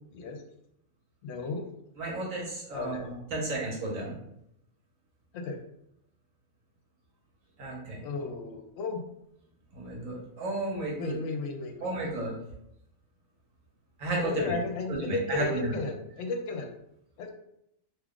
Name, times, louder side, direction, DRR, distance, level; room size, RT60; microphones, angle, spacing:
voice 1, 0.1-0.4 1.2-1.7 2.7-3.1 5.3-5.6 8.0-9.0 11.0-12.1 14.2-16.7 17.2-17.3, left 3 dB, 75° left, 4 dB, 0.9 m, -34 dB
voice 2, 2.0-4.1 7.6-8.0 9.7-11.1 11.8-12.4 14.0-14.5 14.9-15.7, right 2 dB, 85° right, -3 dB, 1.4 m, -33 dB
2.9 x 2.3 x 3.6 m, 0.78 s
omnidirectional pair, 1.4 m